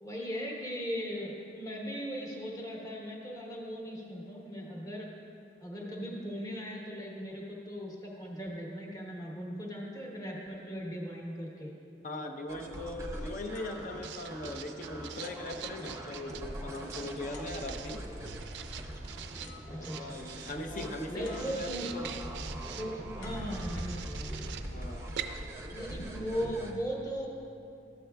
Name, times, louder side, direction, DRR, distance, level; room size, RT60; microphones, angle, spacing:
voice 1, 0.0-5.1 5.6-11.7 19.7-20.2 21.1-21.9 22.8-24.6 25.7-27.3, equal, 20° left, -2 dB, 1.0 m, -38 dB
voice 2, 12.0-18.1 19.6-22.1 24.7-25.1, left 2 dB, 45° left, 5 dB, 0.5 m, -40 dB
sound 1, 12.5-26.7, right 1 dB, 15° right, 0.6 m, -42 dB
Writing, 13.4-26.7, right 8 dB, 65° right, 0.3 m, -46 dB
sound 2, 13.5-14.7 15.2-16.4 17.3-18.0 19.1-19.2 19.4-20.3 21.2-22.0 23.2-24.3 25.0-25.3, left 6 dB, 85° left, 0.6 m, -56 dB
12.0 x 7.5 x 2.3 m, 2.7 s
head